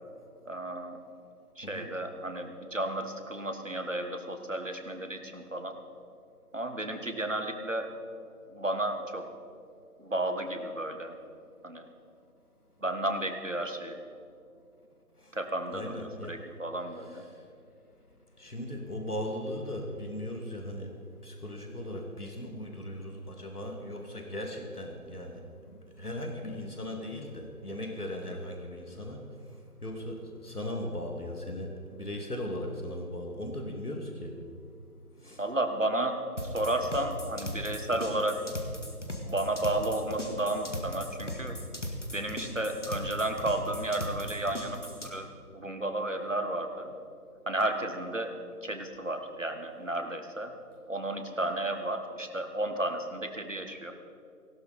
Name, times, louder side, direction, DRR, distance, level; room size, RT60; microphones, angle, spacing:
voice 1, 0.4-1.0 1.6-5.8 6.5-7.9 8.5-9.3 10.0-11.2 11.6-11.9 12.8-14.0 15.3-17.2 35.4-36.2 36.5-38.4 39.2-41.5 42.1-44.8 45.0-45.3 45.5-46.9 47.5-48.3 48.6-50.5 50.9-53.9, right 1 dB, 55° right, 6 dB, 1.6 m, -32 dB
voice 2, 15.7-16.4 16.9-17.3 18.4-20.9 21.2-25.4 25.7-29.3 29.8-34.3 35.2-35.4, left 1 dB, 75° left, 2 dB, 2.5 m, -38 dB
sound 1, 36.4-45.1, left 1 dB, 50° left, 2.0 m, -38 dB
18.5 x 16.5 x 4.2 m, 2.5 s
figure-of-eight pair, 180°, 46 cm